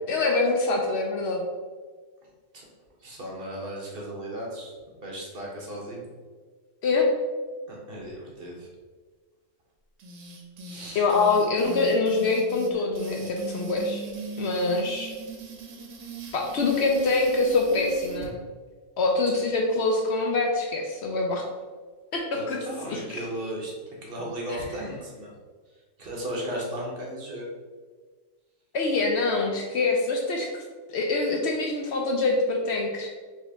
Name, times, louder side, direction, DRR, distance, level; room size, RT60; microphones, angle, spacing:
voice 1, 0.1-1.4 6.8-7.1 10.9-14.0 14.4-15.1 16.3-18.4 19.0-21.4 22.1-22.6 22.9-23.2 28.7-30.6 30.9-33.1, left 3 dB, 65° left, 1 dB, 0.7 m, -25 dB
voice 2, 3.0-4.7 5.0-6.1 7.7-8.7 10.6-11.1 19.3-19.4 22.3-23.7 24.0-25.3 26.0-27.5, right 1 dB, 50° right, -2 dB, 1.0 m, -35 dB
sound 1, 10.0-18.3, right 2 dB, 75° right, 1.0 m, -39 dB
4.4 x 2.9 x 3.3 m, 1.5 s
omnidirectional pair, 1.4 m